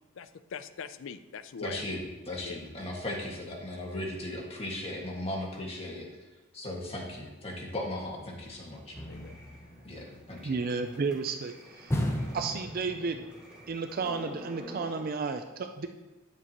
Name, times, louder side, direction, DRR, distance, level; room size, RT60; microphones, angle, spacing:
voice 1, 0.2-1.8 2.4-2.6 9.0-9.4, left 6 dB, 60° left, 13 dB, 0.4 m, -42 dB
voice 2, 1.6-6.1 6.5-9.0 9.8-10.5, left 1 dB, 30° left, -2 dB, 1.7 m, -37 dB
sound 1, 8.9-10.6 11.9-13.4 13.7-13.8, left 1 dB, 15° left, 0.7 m, -35 dB
sound 2, 9.0-15.0, right 1 dB, 5° right, 1.8 m, -49 dB
voice 3, 10.4-12.0 12.3-13.2 13.7-15.9, right 4 dB, 45° right, 7 dB, 0.4 m, -32 dB
9.5 x 7.2 x 3.0 m, 1.1 s
head